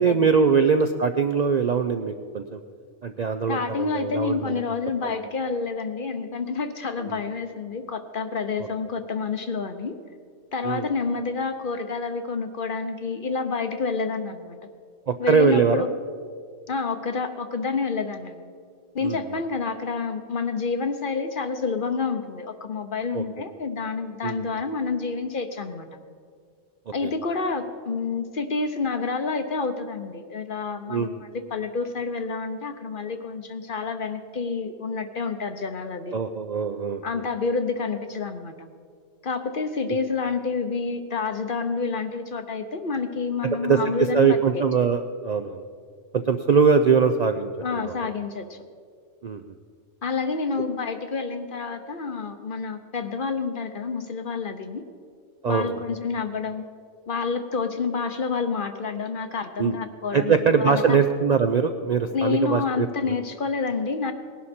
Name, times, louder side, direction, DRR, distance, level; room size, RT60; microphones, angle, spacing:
voice 1, 0.0-2.6 3.0-4.6 5.0-5.1 7.0-7.2 10.6-10.9 15.1-15.9 19.0-19.2 23.1-23.2 24.2-24.5 26.9-27.1 30.9-31.2 36.1-37.2 39.9-40.0 43.4-45.6 46.1-48.1 49.2-49.4 55.4-55.8 59.6-59.8 60.1-63.1, right 5 dB, 55° right, 7 dB, 0.5 m, -22 dB
voice 2, 3.5-10.0 10.5-14.6 15.2-15.9 16.7-18.5 18.9-25.9 26.9-36.2 37.0-38.7 39.2-44.6 47.6-48.6 50.0-54.8 55.5-56.7 57.1-61.0 62.1-64.1, left 4 dB, 50° left, 8 dB, 0.9 m, -28 dB
19.0 x 11.5 x 4.3 m, 2.1 s
omnidirectional pair, 1.3 m